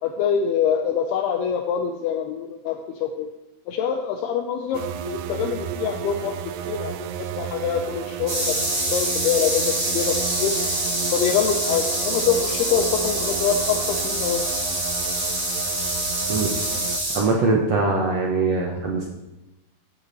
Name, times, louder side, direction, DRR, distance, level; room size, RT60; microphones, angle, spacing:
voice 1, 0.0-3.3 3.7-6.3 6.7-8.6 8.8-10.5 11.1-14.4, left 7 dB, 80° left, 4 dB, 2.7 m, -25 dB
sound 1, 4.7-17.0, right 9 dB, 90° right, 2.8 m, -33 dB
sound 2, 8.3-17.2, right 1 dB, 25° right, 4.3 m, -26 dB
voice 2, 17.1-19.1, right 3 dB, 70° right, -1 dB, 1.5 m, -22 dB
14.5 x 8.7 x 4.2 m, 0.98 s
omnidirectional pair, 4.8 m